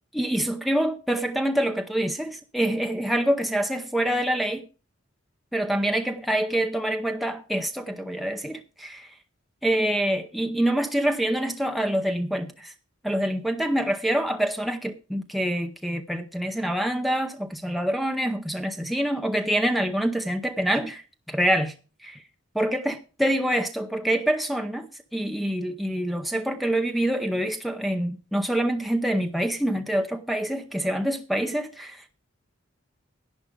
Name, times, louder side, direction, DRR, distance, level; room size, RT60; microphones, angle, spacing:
voice 1, 0.1-4.7 5.5-9.1 9.6-12.7 13.0-21.7 22.0-22.2 22.5-32.1, right 1 dB, ahead, 0.7 m, -26 dB
11.0 x 10.5 x 5.1 m
head